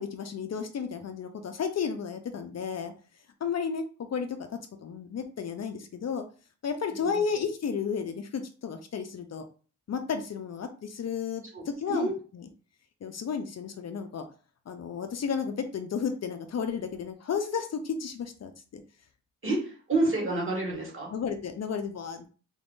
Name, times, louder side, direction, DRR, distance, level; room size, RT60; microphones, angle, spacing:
voice 1, 0.0-2.9 3.4-4.3 4.8-6.2 6.6-9.4 9.9-12.4 13.0-14.3 14.7-18.8 21.1-22.3, left 6 dB, 50° left, 6 dB, 0.5 m, -33 dB
voice 2, 11.5-12.1 19.4-21.1, right 2 dB, 40° right, -2 dB, 1.8 m, -29 dB
3.5 x 2.5 x 3.6 m, 0.38 s
cardioid pair, 85°, 33 cm